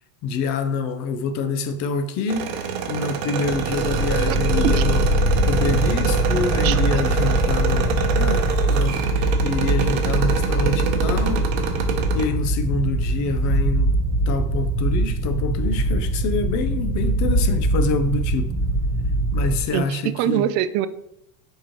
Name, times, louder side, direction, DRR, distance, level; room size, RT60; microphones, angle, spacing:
voice 1, 0.2-5.0 5.4-11.4 12.1-13.9 14.3-18.5 19.3-20.5, left 4 dB, 45° left, 0.7 m, -26 dB
sound 1, 2.3-12.3, right 6 dB, 85° right, 1.0 m, -26 dB
sound 2, 3.4-19.6, right 1 dB, 20° right, 0.8 m, -22 dB
voice 2, 6.6-7.0 19.7-20.9, right 11 dB, 45° right, 0.4 m, -24 dB
6.5 x 4.7 x 3.1 m
supercardioid pair, 140°, 39 cm